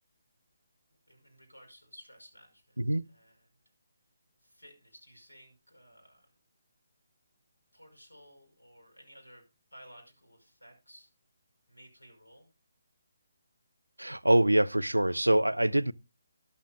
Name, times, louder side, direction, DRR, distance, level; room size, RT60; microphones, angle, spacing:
voice 1, 1.1-2.8 3.1-3.6 4.4-6.3 7.7-11.1 11.7-12.5, equal, 85° left, 5.6 m, -56 dB
voice 2, 14.0-15.9, right 1 dB, 90° right, 0.5 m, -25 dB
13.5 x 11.5 x 2.3 m
figure-of-eight pair, 145°, 0 cm